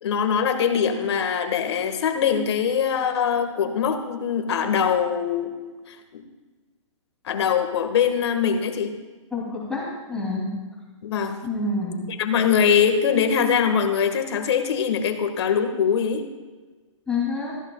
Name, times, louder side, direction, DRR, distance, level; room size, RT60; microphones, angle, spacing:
voice 1, 0.0-5.5 5.9-6.2 7.2-8.9 11.0-11.4 12.1-16.3, left 7 dB, 55° left, 7 dB, 1.8 m, -22 dB
voice 2, 9.3-10.5 11.4-12.0 17.1-17.5, left 3 dB, 5° left, -6 dB, 2.9 m, -27 dB
18.0 x 14.5 x 2.4 m, 1.3 s
hypercardioid pair, 140°, 16 cm